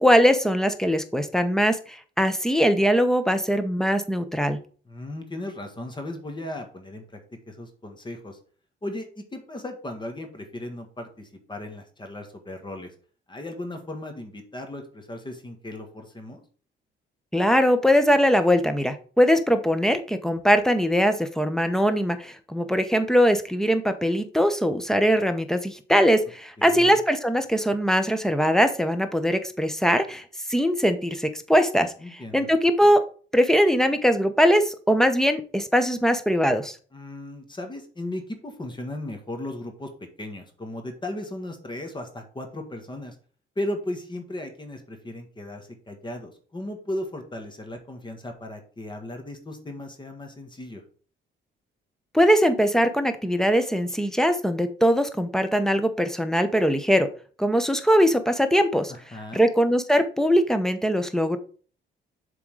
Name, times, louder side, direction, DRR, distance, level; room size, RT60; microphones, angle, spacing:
voice 1, 0.0-4.6 17.3-31.9 32.3-33.0 33.3-36.8 52.1-57.1 57.4-58.9 59.3-61.4, equal, ahead, 9 dB, 0.8 m, -21 dB
voice 2, 4.9-7.2 7.5-8.4 8.8-12.9 13.3-16.4 26.6-27.0 32.0-32.5 36.9-39.9 40.2-43.1 43.5-50.8 58.9-59.5, left 1 dB, 25° left, 5 dB, 1.5 m, -36 dB
7.0 x 3.8 x 4.8 m, 0.41 s
cardioid pair, 90°, 20 cm